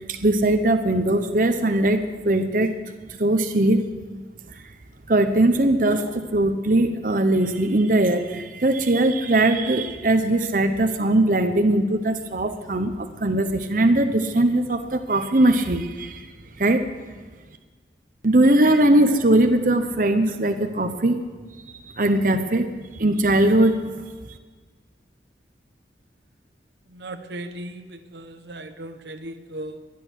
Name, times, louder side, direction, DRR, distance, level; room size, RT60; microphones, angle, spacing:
voice 1, 0.1-2.7 3.2-3.8 5.1-16.2 16.6-16.9 18.2-21.3 21.9-24.1, right 1 dB, 50° right, 7 dB, 1.0 m, -20 dB
voice 2, 26.9-29.8, right 1 dB, 75° right, 8 dB, 1.0 m, -37 dB
19.5 x 11.5 x 6.5 m, 1.4 s
head